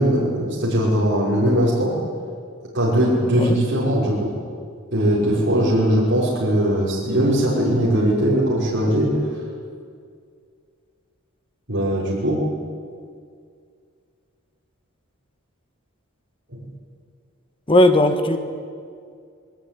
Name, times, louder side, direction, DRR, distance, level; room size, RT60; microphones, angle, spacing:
voice 1, 0.0-2.0 2.7-4.3 4.9-9.1 11.7-12.4 16.5-16.6, equal, 60° right, -6 dB, 5.8 m, -20 dB
voice 2, 17.7-18.4, left 1 dB, 25° left, 7 dB, 1.6 m, -16 dB
21.0 x 19.5 x 9.4 m, 2.2 s
head